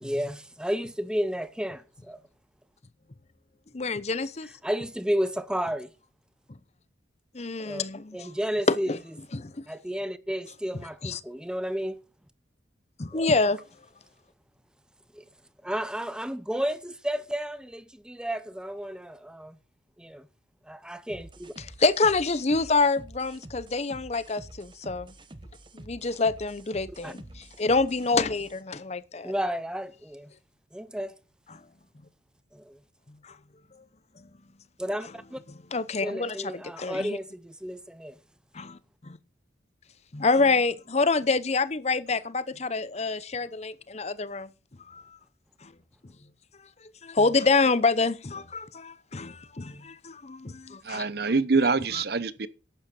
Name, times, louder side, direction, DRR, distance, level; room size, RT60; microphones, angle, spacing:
voice 1, 0.0-2.2 4.6-5.9 7.6-7.8 8.1-8.9 9.7-12.0 13.1-13.3 15.1-15.2 15.6-19.6 20.0-20.3 20.6-21.5 27.0-27.1 29.2-30.3 30.7-31.2 32.5-32.8 34.8-35.4 36.0-38.2, equal, 5° right, 0.6 m, -32 dB
voice 2, 3.7-4.5 7.3-8.3 8.7-9.0 9.3-9.5 11.0-11.2 13.0-13.6 21.6-25.1 25.7-29.3 33.2-33.3 35.7-37.2 38.5-39.2 40.1-44.5 44.9-45.0 45.6-45.7 47.0-51.0 51.9-52.0, left 3 dB, 35° left, 0.7 m, -27 dB
sound 1, 21.1-28.6, right 1 dB, 25° right, 1.0 m, -47 dB
voice 3, 50.8-52.5, right 4 dB, 55° right, 0.9 m, -25 dB
11.5 x 8.7 x 5.4 m
head